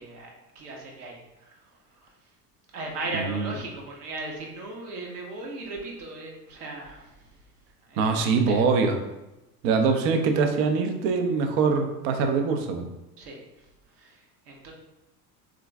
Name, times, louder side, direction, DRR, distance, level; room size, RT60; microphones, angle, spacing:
voice 1, 0.0-1.5 1.9-2.1 2.7-7.3 7.9-8.7 13.2-13.7 14.0-14.7, right 2 dB, 65° right, 0 dB, 1.0 m, -38 dB
voice 2, 3.1-3.6 8.0-9.0 9.6-12.9, right 5 dB, 30° right, 5 dB, 0.4 m, -23 dB
3.7 x 2.5 x 3.2 m, 0.97 s
figure-of-eight pair, 65°, 49 cm